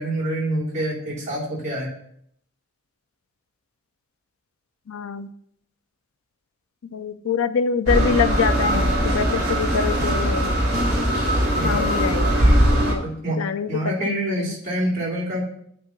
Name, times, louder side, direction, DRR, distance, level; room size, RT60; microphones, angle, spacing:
voice 1, 0.0-1.9 11.6-11.9 13.0-13.4 13.7-15.4, right 1 dB, 35° right, -5 dB, 2.8 m, -26 dB
voice 2, 4.9-5.3 6.9-10.5 11.6-12.3 12.8-13.0 13.4-14.6, left 6 dB, 80° left, 12 dB, 0.5 m, -25 dB
sound 1, 7.9-12.9, equal, 50° right, 3.1 m, -20 dB
8.4 x 3.8 x 6.9 m, 0.69 s
head